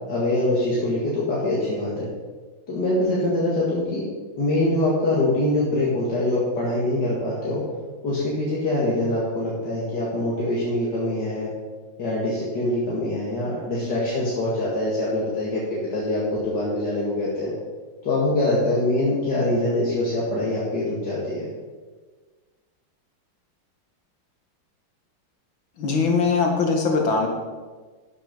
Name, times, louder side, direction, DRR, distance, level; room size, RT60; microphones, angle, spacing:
voice 1, 0.1-2.1 2.7-4.0 4.4-7.6 8.0-11.5 12.0-15.6 15.9-17.5 18.0-21.5, left 1 dB, 60° left, -6 dB, 2.5 m, -24 dB
voice 2, 25.8-27.3, left 4 dB, 90° left, 1 dB, 2.4 m, -21 dB
11.5 x 7.5 x 5.2 m, 1.4 s
omnidirectional pair, 2.1 m